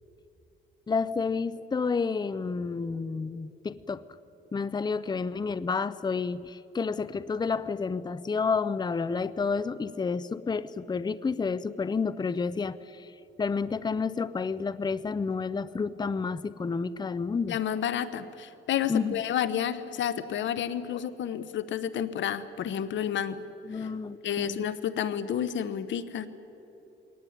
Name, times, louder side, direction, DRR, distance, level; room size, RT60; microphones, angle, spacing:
voice 1, 0.9-4.0 4.5-13.1 13.4-17.6 18.9-19.2 23.6-24.7, left 5 dB, 20° left, 16 dB, 0.6 m, -30 dB
voice 2, 17.5-23.4 23.7-23.9 24.2-26.3, left 9 dB, 70° left, 14 dB, 1.2 m, -30 dB
22.0 x 18.5 x 9.5 m, 2.9 s
cardioid pair, 90°, 20 cm